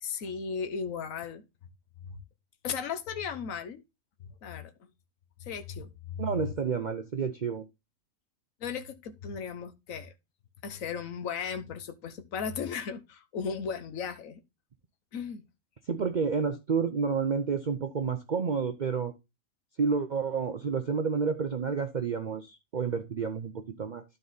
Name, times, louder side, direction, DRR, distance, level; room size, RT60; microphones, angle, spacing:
voice 1, 0.0-1.4 2.1-2.2 2.6-3.8 4.4-4.7 5.4-6.5 8.6-10.1 10.6-14.4 15.1-15.4, left 6 dB, 75° left, 1.4 m, -36 dB
voice 2, 6.2-7.6 15.8-19.1 19.8-24.0, right 5 dB, 45° right, 0.7 m, -30 dB
12.0 x 4.1 x 4.0 m
omnidirectional pair, 1.4 m